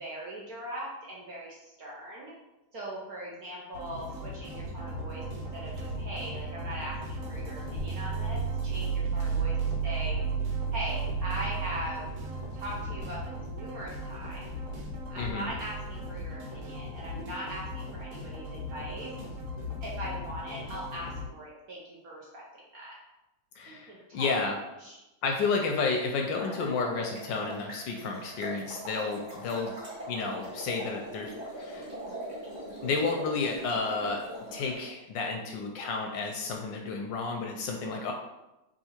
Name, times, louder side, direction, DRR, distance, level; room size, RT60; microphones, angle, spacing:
voice 1, 0.0-2.3 2.7-9.6 9.8-10.2 10.7-12.1 12.5-14.5 15.1-19.1 19.8-22.9 23.7-24.4 24.8-25.0 29.2-29.5, right 1 dB, 60° right, -4 dB, 1.0 m, -40 dB
sound 1, 3.7-21.3, left 2 dB, 90° right, 1.8 m, -40 dB
sound 2, 4.5-16.3 17.2-17.5, right 6 dB, 25° right, 1.6 m, -35 dB
voice 2, 23.6-24.5 25.2-29.7 30.1-31.9 32.8-34.2 34.5-38.1, left 4 dB, 75° left, 2 dB, 1.1 m, -31 dB
sound 3, 26.4-34.7, right 1 dB, 40° right, 1.5 m, -41 dB
3.6 x 2.9 x 4.3 m, 0.97 s
omnidirectional pair, 2.2 m